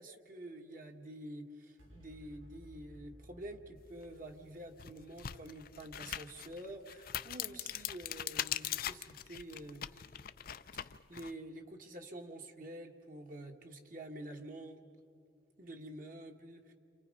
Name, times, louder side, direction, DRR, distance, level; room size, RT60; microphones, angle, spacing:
voice 1, 0.0-10.0 10.8-14.8 15.6-16.7, right 1 dB, 45° right, 3 dB, 1.6 m, -48 dB
sound 1, 1.8-8.5, equal, 85° right, 6.6 m, -60 dB
sound 2, 4.0-4.1 4.7-11.3, left 11 dB, 50° left, 0.5 m, -41 dB
29.5 x 27.0 x 5.4 m, 2.3 s
head